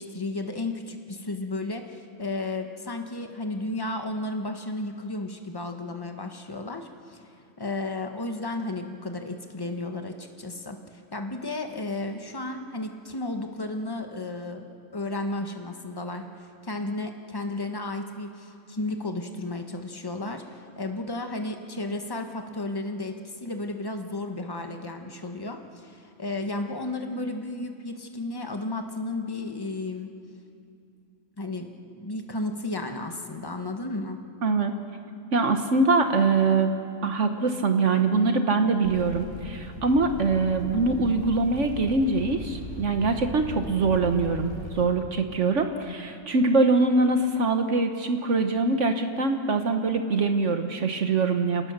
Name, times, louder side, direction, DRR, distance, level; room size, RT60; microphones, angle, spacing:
voice 1, 0.0-7.2 7.6-14.6 14.9-30.1 31.4-34.2, left 2 dB, 15° left, 5 dB, 1.4 m, -33 dB
voice 2, 34.4-34.7 35.3-36.8 37.0-51.7, right 3 dB, 65° right, 6 dB, 1.4 m, -23 dB
sound 1, 38.8-44.8, left 1 dB, 50° left, 4.0 m, -38 dB
29.0 x 18.5 x 6.7 m, 2.5 s
omnidirectional pair, 1.4 m